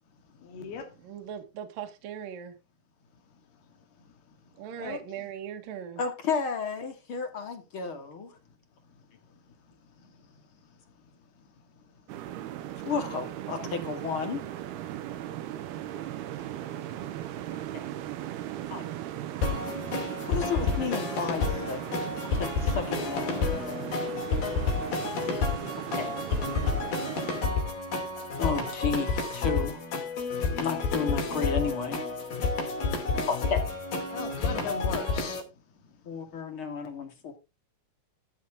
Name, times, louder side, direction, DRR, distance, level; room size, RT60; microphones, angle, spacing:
voice 1, 0.4-0.9 4.8-5.3 22.9-23.9 24.2-24.4 34.1-35.4, left 6 dB, 80° left, 4.2 m, -39 dB
voice 2, 1.0-2.5 4.6-6.0, right 8 dB, 65° right, 3.0 m, -39 dB
voice 3, 6.0-8.3 12.8-14.4 18.7-18.8 20.2-21.8 22.3-23.4 26.0-26.1 28.4-29.8 30.6-32.0 33.3-33.6 36.1-37.3, left 5 dB, 40° left, 2.6 m, -32 dB
sound 1, 12.1-27.5, right 12 dB, 85° right, 3.1 m, -38 dB
sound 2, 19.4-35.4, left 4 dB, 65° left, 4.5 m, -30 dB
14.5 x 8.0 x 3.7 m
omnidirectional pair, 4.5 m